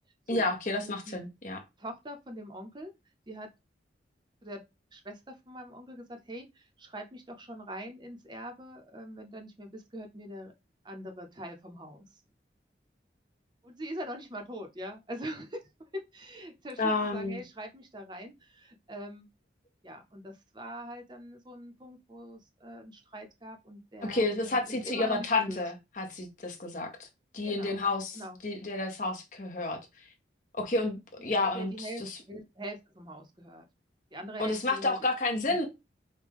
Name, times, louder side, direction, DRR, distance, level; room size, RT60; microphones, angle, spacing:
voice 1, 0.3-1.6 16.8-17.4 24.0-26.9 27.3-29.8 30.6-32.2 34.4-35.6, left 2 dB, 45° left, 0.9 m, -30 dB
voice 2, 0.8-1.2 1.8-2.9 3.3-3.5 4.4-4.6 4.9-10.5 10.8-12.2 13.6-19.3 19.8-25.6 27.4-27.9 28.1-28.4 31.2-33.6 34.1-35.0, equal, 25° right, 0.7 m, -43 dB
5.2 x 2.2 x 3.5 m
head